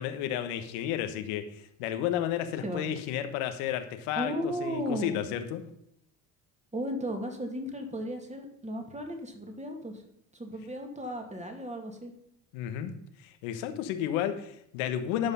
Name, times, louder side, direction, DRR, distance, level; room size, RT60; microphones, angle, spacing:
voice 1, 0.0-5.6 12.5-12.9 13.2-15.3, left 10 dB, 80° left, 9 dB, 1.3 m, -32 dB
voice 2, 4.2-5.1 6.7-10.0 10.3-12.1, equal, 15° right, 4 dB, 2.4 m, -35 dB
12.0 x 5.5 x 5.6 m, 0.74 s
supercardioid pair, 80°, 43 cm